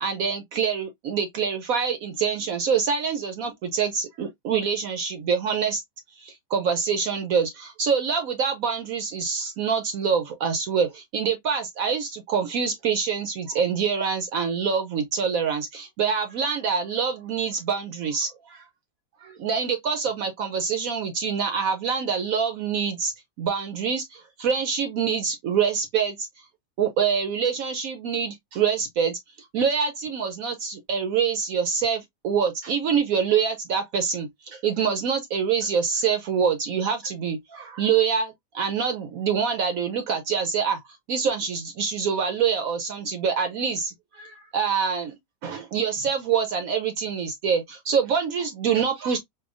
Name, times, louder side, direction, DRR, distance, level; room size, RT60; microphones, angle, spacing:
voice 1, 0.0-5.8 6.2-18.6 19.2-23.1 23.4-26.4 26.8-29.2 29.5-40.8 41.1-45.1 45.4-49.2, right 6 dB, 65° right, 0.9 m, -25 dB
4.7 x 2.3 x 2.4 m
omnidirectional pair, 1.9 m